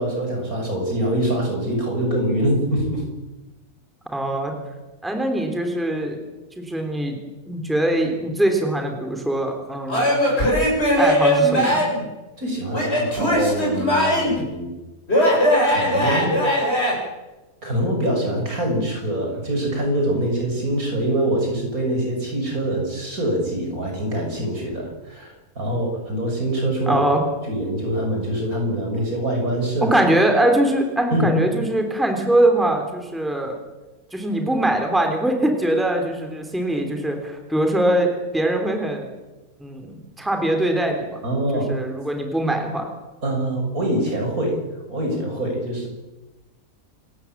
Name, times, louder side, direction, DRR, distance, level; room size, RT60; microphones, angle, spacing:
voice 1, 0.0-3.0 12.4-14.7 15.6-16.3 17.6-27.1 27.5-29.9 31.1-31.3 41.2-41.7 43.2-44.6 44.9-45.9, right 1 dB, 65° right, 1 dB, 6.7 m, -24 dB
voice 2, 4.1-4.5 5.0-6.2 6.6-7.2 7.5-10.1 11.0-11.8 26.9-27.2 29.8-33.6 34.1-39.1 39.6-41.2 41.7-42.9, right 1 dB, ahead, 3 dB, 3.5 m, -22 dB
Male speech man speaking / Yell / Laughter, 9.9-12.0 12.7-14.4 15.1-16.9, equal, 40° left, 7.8 m, -19 dB
27.5 x 14.0 x 9.0 m, 1.1 s
omnidirectional pair, 1.6 m